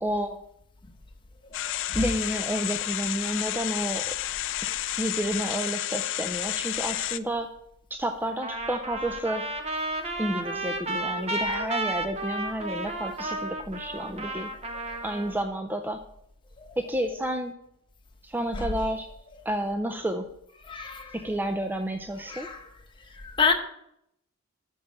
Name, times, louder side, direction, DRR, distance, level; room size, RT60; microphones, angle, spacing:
voice 1, 0.0-0.4 1.9-4.1 5.0-7.5 7.9-9.4 10.2-14.5 15.0-16.0 16.8-17.5 18.2-19.1 19.5-20.3 21.1-22.5, right 1 dB, 10° right, 5 dB, 0.4 m, -30 dB
sound 1, 1.5-7.2, left 14 dB, 60° left, 0.4 m, -31 dB
voice 2, 1.5-2.0 14.8-15.0 16.6-16.8 18.5-18.7 20.7-21.1 22.3-22.7 23.1-23.5, left 5 dB, 20° left, 2 dB, 0.9 m, -29 dB
Trumpet, 8.4-15.4, right 2 dB, 30° right, 0.8 m, -32 dB
6.6 x 5.3 x 6.9 m, 0.76 s
head